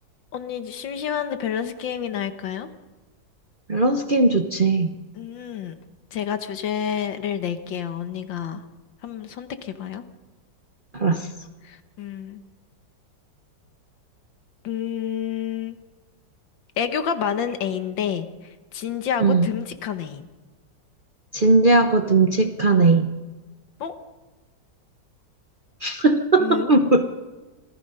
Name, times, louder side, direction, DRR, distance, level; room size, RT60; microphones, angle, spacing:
voice 1, 0.3-2.7 5.1-5.8 6.1-8.6 9.0-10.0 11.6-12.4 14.6-15.8 16.8-20.2 23.8-23.9 26.4-26.7, left 8 dB, 85° left, 9 dB, 1.9 m, -29 dB
voice 2, 3.7-4.9 10.9-11.3 19.2-19.5 21.3-23.1 25.8-27.0, right 3 dB, 40° right, 5 dB, 0.8 m, -18 dB
26.5 x 18.5 x 5.5 m, 1.2 s
omnidirectional pair, 2.0 m